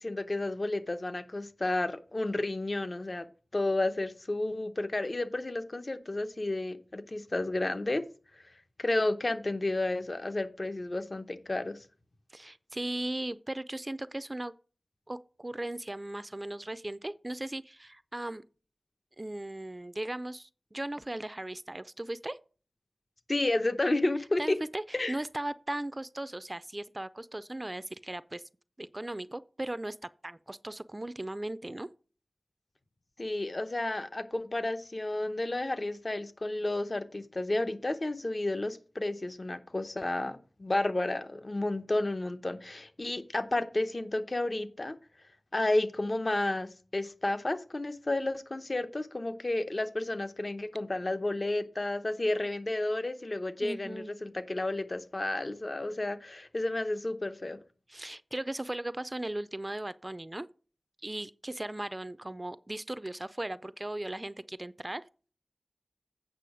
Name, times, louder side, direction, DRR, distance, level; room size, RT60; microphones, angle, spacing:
voice 1, 0.0-3.3 3.5-8.0 8.8-11.8 23.3-24.6 24.9-25.2 33.2-45.0 45.5-57.6, left 2 dB, 50° left, 0.9 m, -31 dB
voice 2, 12.3-14.5 15.1-18.4 19.2-22.4 24.4-28.4 28.8-30.0 30.2-31.9 53.6-54.1 57.9-60.5 61.0-65.0, right 1 dB, 30° right, 0.4 m, -37 dB
8.5 x 6.1 x 4.8 m
wide cardioid pair, 50°, 0 cm